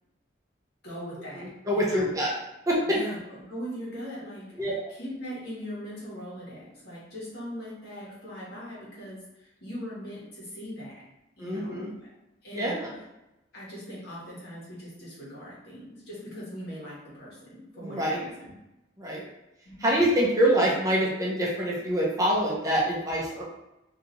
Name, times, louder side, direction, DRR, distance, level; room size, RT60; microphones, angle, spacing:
voice 1, 0.8-2.3 2.8-11.0 11.4-12.1 12.4-12.8 13.5-18.5 19.6-19.9, equal, 60° left, -7 dB, 1.3 m, -40 dB
voice 2, 1.4-2.3 2.7-3.0 4.6-4.7 11.4-11.9 12.5-13.0 17.8-18.3 19.0-19.2 19.8-23.4, equal, 20° right, -5 dB, 0.6 m, -25 dB
3.1 x 2.7 x 2.6 m, 0.94 s
head